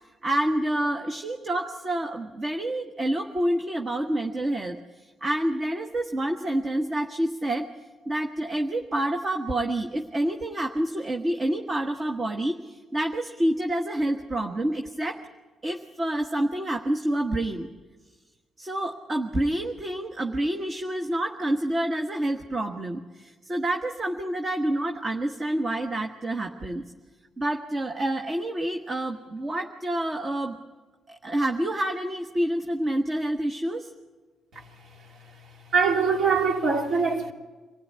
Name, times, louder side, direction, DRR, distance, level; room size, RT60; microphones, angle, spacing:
voice 1, 0.2-7.7 8.0-15.2 15.6-17.7 18.6-26.8 27.4-30.6 31.1-33.9, right 1 dB, 30° right, 1.4 m, -28 dB
voice 2, 35.7-37.3, right 5 dB, 55° right, 2.8 m, -22 dB
25.5 x 15.5 x 9.5 m
cardioid pair, 90°, 0 cm